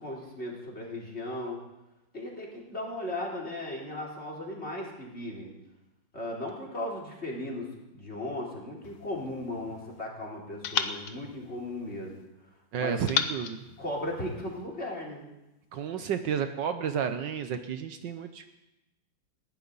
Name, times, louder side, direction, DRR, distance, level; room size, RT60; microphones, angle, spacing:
voice 1, 0.0-1.6 2.1-5.5 6.1-12.2 12.8-12.9 13.8-15.3, left 1 dB, 30° left, -1 dB, 3.7 m, -36 dB
sound 1, 8.8-10.0 10.6-12.3 13.1-14.7, left 8 dB, 85° left, 1.7 m, -35 dB
voice 2, 12.7-13.6 15.7-18.5, right 7 dB, 70° right, 8 dB, 1.4 m, -31 dB
19.5 x 15.5 x 4.0 m, 0.97 s
omnidirectional pair, 2.2 m